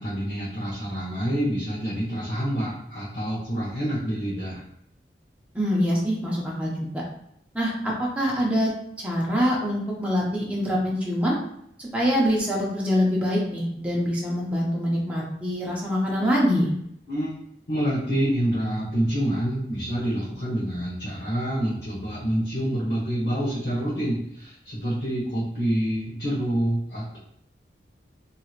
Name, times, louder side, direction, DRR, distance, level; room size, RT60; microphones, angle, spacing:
voice 1, 0.0-4.6 17.1-17.3 17.7-27.2, equal, 70° left, -9 dB, 1.0 m, -27 dB
voice 2, 5.5-6.7 7.5-8.7 9.0-11.4 11.8-16.7, equal, 10° right, -5 dB, 0.6 m, -24 dB
2.8 x 2.8 x 2.4 m, 0.72 s
head